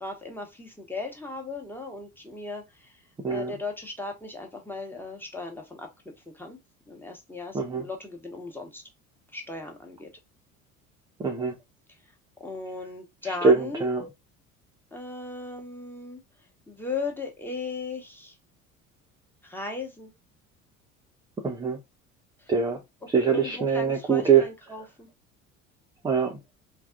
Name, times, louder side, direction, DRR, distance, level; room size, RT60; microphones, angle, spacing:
voice 1, 0.0-3.0 3.3-6.6 6.9-8.8 9.3-10.1 12.4-14.1 14.9-16.2 16.7-18.4 19.4-20.1 22.4-22.5 23.2-25.1, left 3 dB, 5° left, 1.0 m, -37 dB
voice 2, 3.2-3.5 7.5-7.8 11.2-11.5 13.2-14.1 21.4-21.8 22.5-22.8 23.1-24.5 26.0-26.4, right 6 dB, 10° right, 0.4 m, -23 dB
3.4 x 2.3 x 2.2 m
figure-of-eight pair, 60°, 42 cm